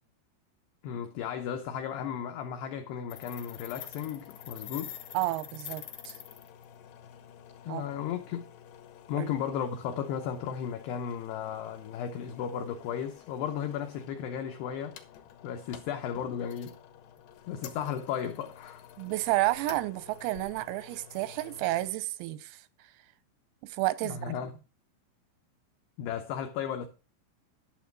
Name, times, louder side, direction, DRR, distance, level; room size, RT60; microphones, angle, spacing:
voice 1, 0.8-5.0 7.6-8.4 9.1-15.0 15.4-16.8 17.5-18.8 24.0-24.5 26.0-26.9, left 8 dB, 90° left, 2.3 m, -35 dB
sound 1, 3.1-21.9, left 10 dB, 70° left, 2.5 m, -49 dB
voice 2, 5.2-6.2 7.7-7.8 9.2-9.3 19.0-22.6 23.6-24.3, right 18 dB, 90° right, 3.5 m, -31 dB
11.5 x 7.3 x 4.6 m
omnidirectional pair, 6.0 m